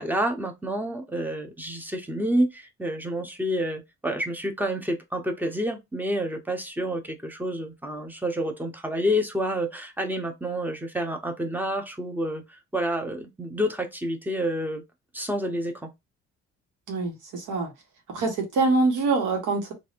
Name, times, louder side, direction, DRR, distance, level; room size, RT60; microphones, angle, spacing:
voice 1, 0.0-14.8 15.1-15.9, equal, 5° right, 0.7 m, -29 dB
voice 2, 16.9-17.7 18.1-19.7, right 3 dB, 85° right, 1.2 m, -24 dB
3.2 x 2.5 x 2.5 m
cardioid pair, 90°, 30 cm